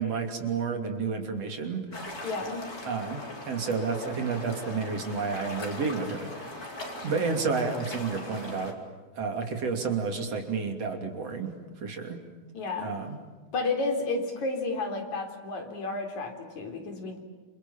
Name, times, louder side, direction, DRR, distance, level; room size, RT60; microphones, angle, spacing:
voice 1, 0.0-1.9 2.9-6.6 7.0-8.8 9.2-12.2 12.8-13.2, right 5 dB, 55° right, 4 dB, 4.1 m, -31 dB
sound 1, 1.9-8.7, left 1 dB, 30° left, 4.5 m, -40 dB
voice 2, 2.2-2.7 12.5-13.0 13.5-17.2, left 3 dB, 75° left, 4 dB, 5.2 m, -31 dB
29.0 x 28.0 x 7.3 m, 1.3 s
omnidirectional pair, 3.3 m